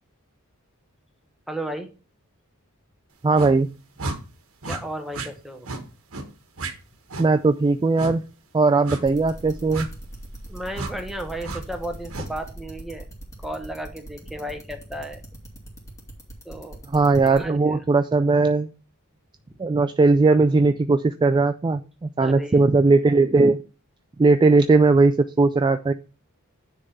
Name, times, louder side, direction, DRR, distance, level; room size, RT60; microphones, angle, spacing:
voice 1, 1.5-1.9 4.6-5.7 10.5-13.1 13.4-15.2 16.4-16.8 17.2-17.6 22.2-22.5, right 1 dB, ahead, 4 dB, 1.1 m, -34 dB
voice 2, 3.2-3.7 7.2-8.2 8.5-9.9 16.9-18.7 19.6-23.6 24.2-25.9, right 3 dB, 20° right, 9 dB, 0.3 m, -18 dB
sound 1, 3.3-3.5 4.0-4.2 4.6-4.8 5.1-5.3 5.6-5.8 6.1-6.3 6.6-6.7 7.1-7.3 8.0-8.1 8.9-9.0 9.7-9.9 10.7-10.9 11.4-11.6 12.1-12.3, right 2 dB, 65° right, 1.3 m, -31 dB
sound 2, 9.0-17.4, right 1 dB, 15° left, 2.4 m, -39 dB
9.8 x 3.7 x 5.4 m, 0.34 s
head